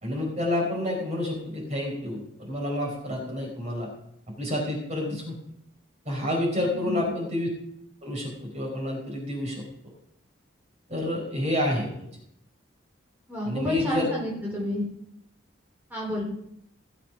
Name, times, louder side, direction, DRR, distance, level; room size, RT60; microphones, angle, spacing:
voice 1, 0.0-3.9 4.4-5.4 6.0-7.5 8.0-9.9 10.9-12.1 13.4-14.1, left 1 dB, 35° right, -1 dB, 4.5 m, -29 dB
voice 2, 6.6-7.0 13.3-14.8 15.9-16.2, equal, 10° right, -4 dB, 4.1 m, -30 dB
17.5 x 7.0 x 5.8 m, 0.74 s
head